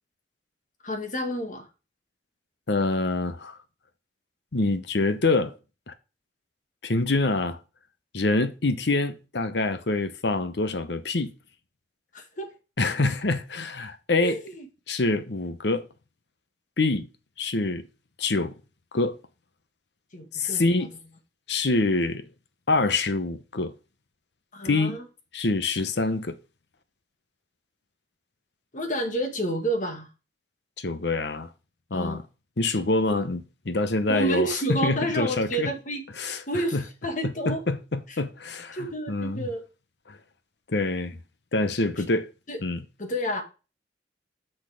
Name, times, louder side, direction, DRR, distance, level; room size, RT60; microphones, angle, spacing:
voice 1, 0.8-1.7 12.1-12.5 14.2-14.6 20.1-20.9 24.5-25.0 28.7-30.1 31.9-32.2 33.1-33.2 34.1-36.1 36.5-37.6 38.7-39.6 42.5-42.6 43.0-43.4, right 1 dB, 45° left, 1.8 m, -29 dB
voice 2, 2.7-3.6 4.5-5.5 5.9-6.0 6.8-7.6 8.1-11.3 12.8-14.4 14.9-15.8 16.8-17.1 17.4-17.8 18.2-18.5 18.9-19.2 20.3-20.9 21.5-22.3 22.7-23.7 24.6-25.0 25.3-26.3 30.8-31.5 31.9-32.2 32.6-35.7 36.2-36.4 36.7-36.8 37.2-39.5 40.1-40.2 40.7-41.2 41.5-42.3 42.6-42.8, left 2 dB, 70° left, 0.9 m, -26 dB
6.4 x 6.3 x 5.0 m
head